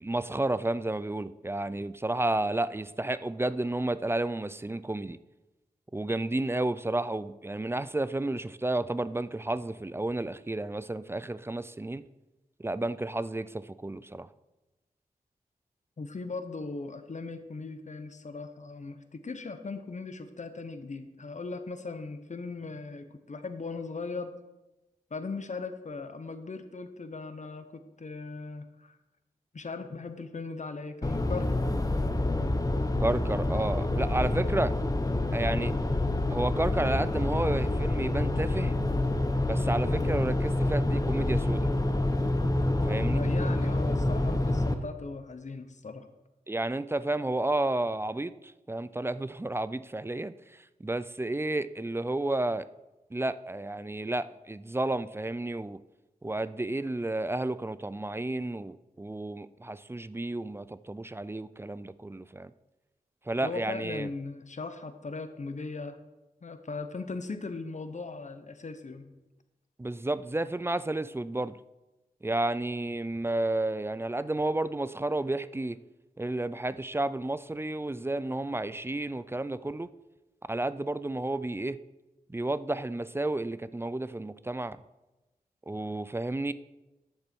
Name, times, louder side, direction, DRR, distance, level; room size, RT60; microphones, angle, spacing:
voice 1, 0.0-5.2 5.9-12.0 12.6-14.3 33.0-34.7 35.3-35.7 36.3-38.7 39.4-41.7 42.9-43.2 46.5-48.3 48.7-50.3 50.8-52.6 53.1-55.8 56.2-62.5 63.3-64.1 69.8-71.6 72.2-75.8 76.2-79.9 80.5-81.8 82.3-84.8 85.7-86.5, right 2 dB, 15° right, 16 dB, 0.4 m, -31 dB
voice 2, 16.0-24.3 25.1-28.9 29.5-31.7 43.1-46.1 63.4-66.0 66.4-69.1, left 3 dB, 50° left, 9 dB, 1.0 m, -38 dB
sound 1, 31.0-44.7, left 1 dB, 25° left, 1.0 m, -27 dB
9.9 x 6.8 x 4.5 m, 1.0 s
cardioid pair, 45°, 15 cm